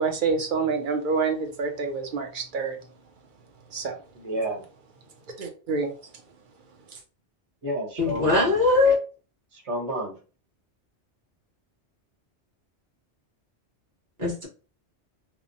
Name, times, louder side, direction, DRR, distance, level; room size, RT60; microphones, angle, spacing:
voice 1, 0.0-2.8 3.7-4.0 5.4-5.9, right 4 dB, 55° right, 4 dB, 0.7 m, -27 dB
voice 2, 4.1-4.6 7.6-8.6 9.5-10.2, right 1 dB, 75° right, 1 dB, 1.3 m, -30 dB
voice 3, 8.0-9.0 14.2-14.5, left 3 dB, 35° right, -4 dB, 1.3 m, -21 dB
2.9 x 2.1 x 2.5 m, 0.36 s
omnidirectional pair, 1.2 m